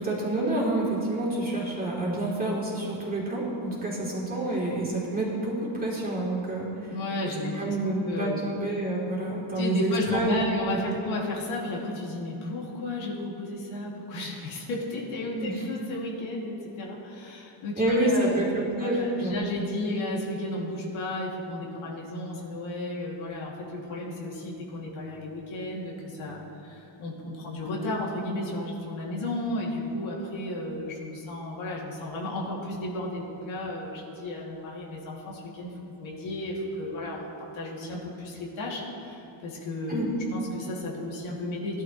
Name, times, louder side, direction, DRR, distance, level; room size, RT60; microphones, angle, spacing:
voice 1, 0.0-6.9 7.2-10.4 10.7-10.9 15.4-15.7 17.8-19.4 39.9-40.1, right 1 dB, 20° right, -6 dB, 3.4 m, -28 dB
voice 2, 6.9-8.5 9.6-40.0 40.3-41.8, left 1 dB, 75° left, -4 dB, 2.7 m, -33 dB
17.5 x 12.0 x 3.2 m, 2.9 s
cardioid pair, 130°, 48 cm